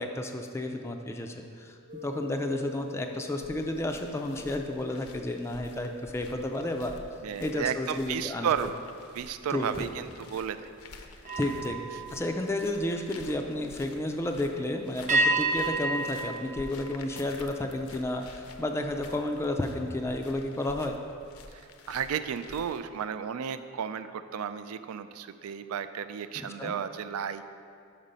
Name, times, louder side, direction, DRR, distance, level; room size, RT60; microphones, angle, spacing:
voice 1, 0.0-7.0 7.4-8.5 9.5-9.9 11.4-21.0 26.4-26.8, left 1 dB, 10° left, 3 dB, 0.3 m, -32 dB
sound 1, 1.9-7.5 7.9-8.2 11.2-13.4 15.1-17.7, right 2 dB, 35° right, 0.6 m, -34 dB
sound 2, 3.4-22.8, left 3 dB, 80° left, 0.6 m, -50 dB
voice 2, 7.2-8.8 9.1-10.7 21.5-27.4, right 7 dB, 80° right, 12 dB, 0.4 m, -33 dB
5.9 x 5.1 x 5.5 m, 2.5 s
head